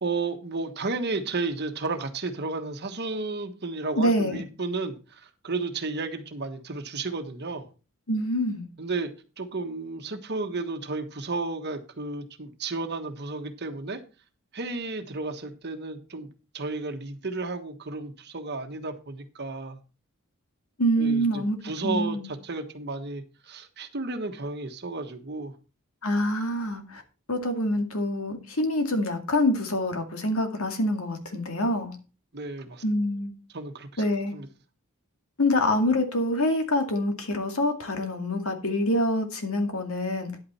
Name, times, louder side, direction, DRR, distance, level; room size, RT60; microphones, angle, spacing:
voice 1, 0.0-7.7 8.8-9.1 9.4-14.0 14.5-16.3 16.5-19.8 21.0-25.5 32.3-32.8 33.5-34.0 34.3-34.5, right 3 dB, 50° right, 7 dB, 1.3 m, -33 dB
voice 2, 4.0-4.4 8.1-8.7 20.8-22.3 26.0-27.0 27.3-31.9 32.8-33.3 34.0-34.3 35.4-40.4, left 1 dB, 75° left, 5 dB, 2.1 m, -26 dB
10.0 x 8.6 x 4.2 m, 0.32 s
head